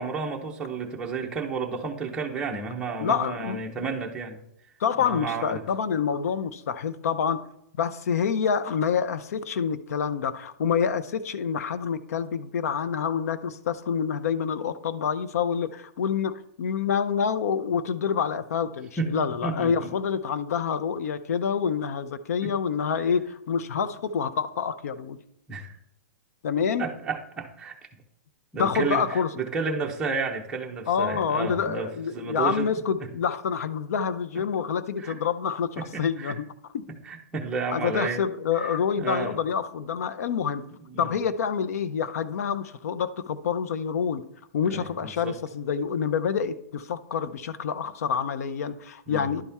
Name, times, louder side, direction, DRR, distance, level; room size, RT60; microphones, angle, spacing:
voice 1, 0.0-4.4 5.0-5.6 19.0-19.1 19.4-19.9 22.4-22.5 25.5-25.8 26.8-27.8 28.5-32.7 33.0-33.1 34.3-34.4 35.0-35.2 35.8-36.3 37.0-38.2 38.6-39.4 40.9-41.1 44.6-45.4 49.1-49.3, right 4 dB, 10° right, 0 dB, 0.8 m, -32 dB
voice 2, 3.0-3.9 4.8-7.4 7.8-16.3 16.6-25.2 26.4-26.9 28.6-29.3 30.9-36.4 36.7-36.8 37.7-40.7 41.0-44.2 44.5-49.4, left 7 dB, 70° left, 13 dB, 0.6 m, -27 dB
11.0 x 4.2 x 3.5 m, 0.76 s
hypercardioid pair, 165°, 9 cm